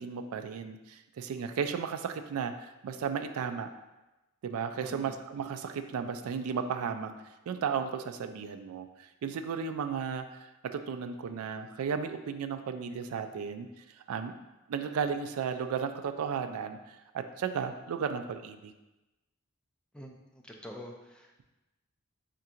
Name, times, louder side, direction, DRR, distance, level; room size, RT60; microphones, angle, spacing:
voice 1, 0.0-3.7 4.4-13.7 14.1-14.4 14.7-18.7, right 6 dB, 85° right, 9 dB, 0.3 m, -34 dB
voice 2, 4.8-5.2 19.9-21.4, equal, 5° left, 1 dB, 0.4 m, -47 dB
3.6 x 2.5 x 4.3 m, 1.0 s
head